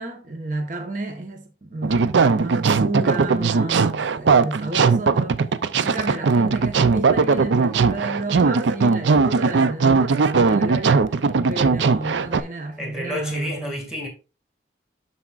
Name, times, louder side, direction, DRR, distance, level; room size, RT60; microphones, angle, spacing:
voice 1, 0.0-5.4 5.8-11.2 11.5-13.8, right 2 dB, 45° right, 1.1 m, -31 dB
sound 1, 1.8-12.4, right 4 dB, 75° right, 0.5 m, -19 dB
voice 2, 12.8-14.1, equal, 5° right, 2.1 m, -30 dB
12.0 x 4.2 x 2.5 m
head